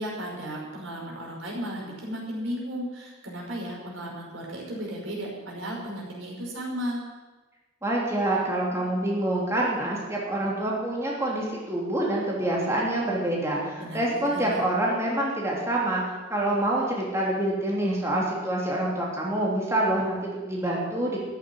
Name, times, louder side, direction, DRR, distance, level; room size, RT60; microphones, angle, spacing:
voice 1, 0.0-7.0 13.8-14.6, equal, 85° right, -2 dB, 5.3 m, -34 dB
voice 2, 7.8-21.2, right 1 dB, 15° right, -4 dB, 3.0 m, -26 dB
14.0 x 8.9 x 9.8 m, 1.2 s
head